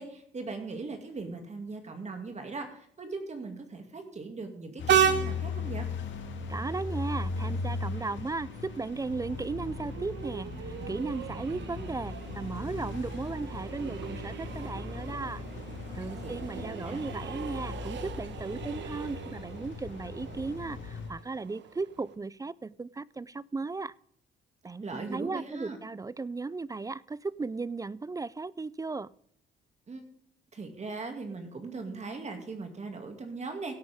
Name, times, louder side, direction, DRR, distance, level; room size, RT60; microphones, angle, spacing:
voice 1, 0.0-5.9 16.2-17.0 24.8-25.8 29.9-30.0 30.5-33.8, right 3 dB, 35° right, 5 dB, 2.3 m, -39 dB
sound 1, 4.8-21.1, left 4 dB, 70° left, 1.8 m, -38 dB
Train, 4.9-22.2, right 8 dB, 65° right, 1.2 m, -36 dB
voice 2, 6.5-15.4 15.9-23.9 24.6-29.1, right 3 dB, 15° right, 21 dB, 0.4 m, -36 dB
16.5 x 8.6 x 3.5 m, 0.65 s
cardioid pair, 90°, 20 cm